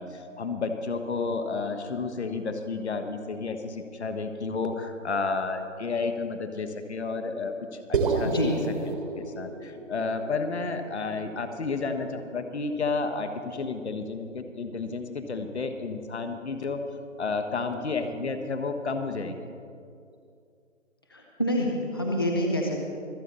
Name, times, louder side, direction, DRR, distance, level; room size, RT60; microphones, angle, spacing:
voice 1, 0.0-8.5 8.9-16.8 17.2-19.3, left 4 dB, 55° left, 7 dB, 1.4 m, -31 dB
sound 1, 7.9-12.3, right 4 dB, 40° right, 1.3 m, -31 dB
voice 2, 21.1-22.8, equal, 20° left, 0 dB, 0.5 m, -27 dB
25.5 x 8.6 x 4.1 m, 2.4 s
figure-of-eight pair, 160°, 40 cm